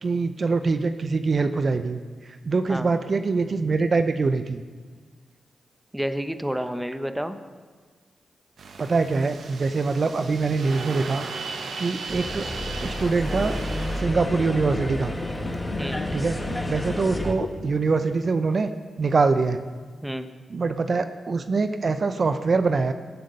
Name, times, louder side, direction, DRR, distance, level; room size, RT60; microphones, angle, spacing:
voice 1, 0.0-2.0 2.4-4.6 8.8-11.2 11.8-12.4 12.8-13.6 13.9-15.1 16.1-16.3 16.6-18.7 19.0-19.6 20.5-22.9, right 4 dB, 55° right, 9 dB, 0.7 m, -24 dB
voice 2, 5.9-7.4 15.8-16.0 20.0-20.3, equal, 5° right, 9 dB, 1.0 m, -29 dB
sound 1, 8.6-14.0, right 4 dB, 70° right, 1.1 m, -36 dB
sound 2, 12.1-17.3, left 1 dB, 20° left, 1.8 m, -30 dB
sound 3, 13.9-18.0 18.2-18.5 19.3-19.4, left 6 dB, 75° left, 0.6 m, -39 dB
17.0 x 7.7 x 5.4 m, 1.5 s
supercardioid pair, 45°, 0 cm